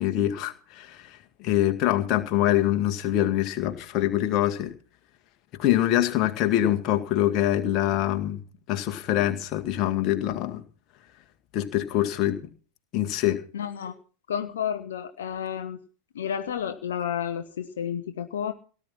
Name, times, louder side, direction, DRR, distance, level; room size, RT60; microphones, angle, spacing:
voice 1, 0.0-4.7 5.6-8.4 8.7-10.6 11.5-12.5 12.9-13.4, left 13 dB, 40° left, 5 dB, 2.0 m, -24 dB
voice 2, 13.5-14.0 14.3-15.8 16.1-18.5, left 8 dB, 60° left, 7 dB, 1.1 m, -31 dB
18.0 x 10.0 x 5.8 m, 0.38 s
figure-of-eight pair, 90°, 0 cm